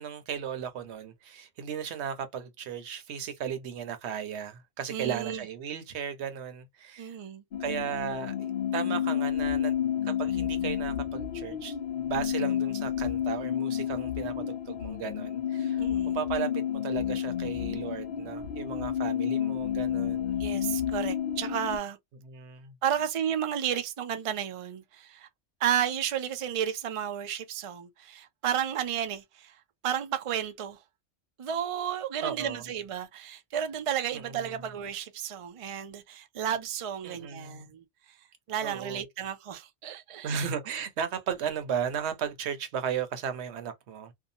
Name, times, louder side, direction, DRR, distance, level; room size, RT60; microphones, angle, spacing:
voice 1, 0.0-7.2 7.6-9.8 10.0-15.8 16.1-20.4 22.2-22.7 32.2-32.6 34.1-34.6 37.0-37.7 38.6-39.0 40.2-44.1, right 8 dB, 75° right, 0.9 m, -35 dB
voice 2, 4.9-5.4 7.0-7.4 15.8-16.2 20.4-22.0 22.8-25.3 25.6-29.5 29.8-30.8 31.4-37.8 38.5-40.5, right 9 dB, 60° right, 0.3 m, -32 dB
sound 1, 7.5-21.8, left 9 dB, 60° left, 0.6 m, -30 dB
2.7 x 2.2 x 2.6 m
omnidirectional pair, 1.2 m